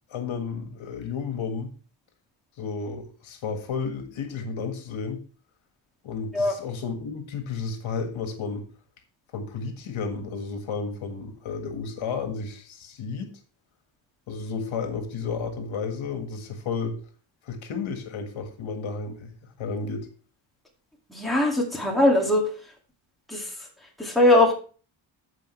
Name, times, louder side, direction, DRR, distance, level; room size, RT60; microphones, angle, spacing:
voice 1, 0.1-1.7 2.6-5.2 6.0-8.7 9.3-13.3 14.3-17.0 17.5-20.1, left 5 dB, 80° left, 1.8 m, -32 dB
voice 2, 21.1-22.5 23.3-23.5 24.0-24.5, left 1 dB, ahead, 2.2 m, -20 dB
14.5 x 5.0 x 3.2 m
wide cardioid pair, 170°, 47 cm